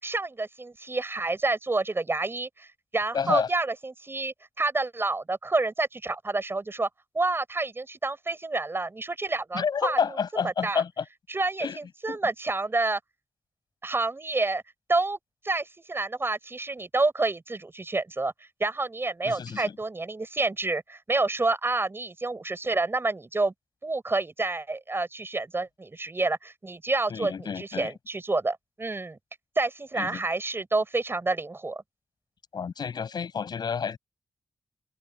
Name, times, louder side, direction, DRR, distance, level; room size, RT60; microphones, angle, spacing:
voice 1, 0.0-2.7 2.9-6.9 7.1-10.0 10.4-10.8 11.3-13.0 13.8-14.6 14.9-15.2 15.4-18.3 18.6-23.5 23.8-29.2 29.6-31.8, right 3 dB, 30° right, 7.9 m, -28 dB
voice 2, 3.1-3.5 9.5-11.0 11.6-11.8 12.1-12.2 19.2-19.8 27.1-27.9 30.0-30.2 32.5-34.0, left 6 dB, 75° left, 8.0 m, -29 dB
open air
cardioid pair, 70°, 7 cm